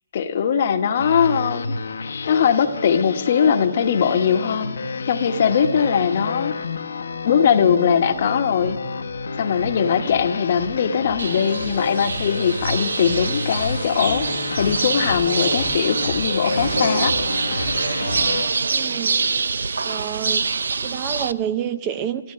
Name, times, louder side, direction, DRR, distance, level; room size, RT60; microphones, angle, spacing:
voice 1, 0.1-1.7 2.3-4.8 5.1-6.5 7.2-8.8 9.4-14.3 14.6-17.1, left 7 dB, 50° left, 7 dB, 1.1 m, -20 dB
sound 1, 0.9-18.4, left 4 dB, 70° left, 1.0 m, -29 dB
sound 2, 11.2-21.3, right 4 dB, 75° right, 0.5 m, -25 dB
voice 2, 18.7-19.2 19.8-20.6 20.8-22.3, right 9 dB, 25° right, 12 dB, 0.5 m, -28 dB
14.0 x 12.5 x 7.4 m, 1.1 s
hypercardioid pair, 150°, 0 cm